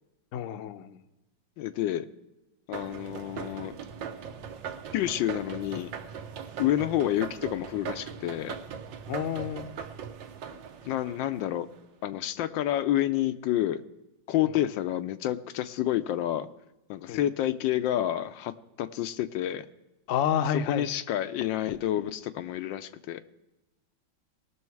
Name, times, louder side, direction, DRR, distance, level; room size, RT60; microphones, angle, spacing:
voice 1, 0.3-1.0 9.1-9.7 14.5-14.6 17.1-17.2 20.1-20.9, left 9 dB, 65° left, 10 dB, 0.8 m, -29 dB
voice 2, 1.6-2.1 2.7-3.7 4.9-5.9 6.6-8.6 10.8-11.7 12.0-13.8 14.3-16.5 16.9-19.6 20.7-23.2, left 12 dB, 90° left, 11 dB, 1.4 m, -29 dB
sound 1, 2.7-11.8, right 7 dB, 80° right, 1.5 m, -40 dB
19.0 x 6.3 x 4.6 m, 1.0 s
omnidirectional pair, 2.0 m